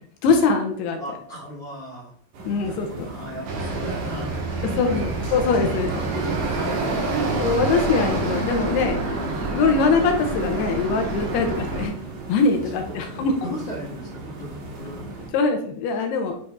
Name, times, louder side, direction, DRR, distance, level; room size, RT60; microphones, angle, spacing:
voice 1, 0.2-1.0 2.5-3.1 4.8-5.9 7.3-9.0 9.5-11.9 12.3-13.3 15.3-16.4, left 4 dB, 80° left, 4 dB, 2.4 m, -22 dB
voice 2, 1.0-2.1 2.7-5.2 5.9-7.0 11.4-11.6 12.9-15.1, equal, 50° left, -7 dB, 2.1 m, -37 dB
sound 1, 2.3-15.3, right 2 dB, 65° right, 3.3 m, -38 dB
sound 2, 3.5-11.9, right 3 dB, 85° right, 4.1 m, -27 dB
9.3 x 4.9 x 2.4 m, 0.62 s
omnidirectional pair, 5.3 m